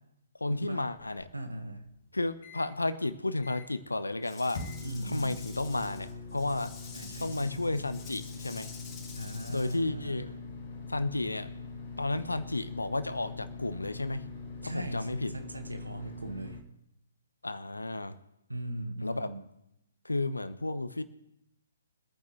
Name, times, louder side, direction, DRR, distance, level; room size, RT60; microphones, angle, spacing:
voice 1, 0.4-1.3 2.1-4.6 5.0-6.7 7.2-8.7 9.5-10.3 10.9-11.5 12.0-14.2 14.6-15.3 17.4-18.1 19.0-19.3 20.0-21.0, left 2 dB, 75° left, 13 dB, 1.0 m, -32 dB
sound 1, 0.9-2.7 3.1-3.2 3.4-3.9 4.5-16.6, left 4 dB, 45° left, 2.9 m, -43 dB
voice 2, 1.3-1.9 4.8-5.4 6.9-7.6 9.2-10.3 14.6-16.6 18.5-19.4, right 1 dB, 75° right, 6 dB, 1.7 m, -39 dB
Rattle / Rattle (instrument), 4.2-9.8, left 5 dB, 15° left, 3.8 m, -49 dB
24.5 x 9.4 x 3.3 m, 0.85 s
figure-of-eight pair, 130°, 0 cm